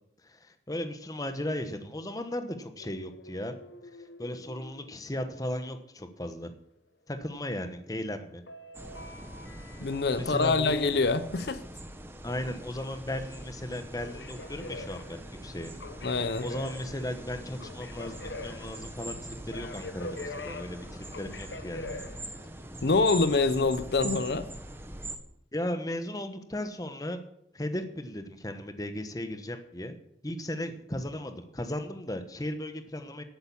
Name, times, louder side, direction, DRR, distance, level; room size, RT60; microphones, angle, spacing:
voice 1, 0.2-3.6 4.0-6.5 7.1-8.4 10.2-10.8 12.2-15.7 16.4-22.1 25.5-27.2 27.5-29.9 30.2-33.2, left 1 dB, 20° left, 9 dB, 1.1 m, -36 dB
sound 1, 2.8-5.7 8.5-10.3 13.8-22.7, left 2 dB, 80° left, 1.2 m, -45 dB
sound 2, 8.7-25.2, right 1 dB, 15° right, 1.2 m, -43 dB
voice 2, 9.8-11.6 16.0-16.5 22.8-24.5, left 3 dB, 60° left, 12 dB, 0.7 m, -25 dB
11.5 x 9.0 x 7.1 m, 0.75 s
head